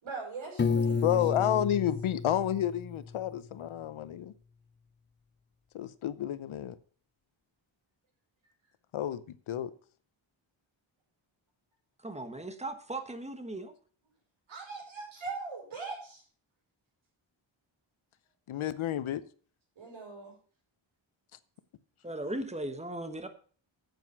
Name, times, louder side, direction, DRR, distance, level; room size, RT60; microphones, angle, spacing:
voice 1, 0.0-1.6 14.5-16.2 19.8-20.3, right 4 dB, 75° right, -3 dB, 5.6 m, -41 dB
Piano, 0.6-3.5, left 5 dB, 25° left, 0.5 m, -31 dB
voice 2, 0.9-4.3 5.7-6.7 8.9-9.7 18.5-19.2, left 11 dB, 80° left, 14 dB, 0.8 m, -30 dB
voice 3, 12.0-13.7 22.0-23.3, right 1 dB, 15° right, 9 dB, 1.2 m, -37 dB
9.2 x 8.1 x 5.4 m, 0.42 s
wide cardioid pair, 135°, 48 cm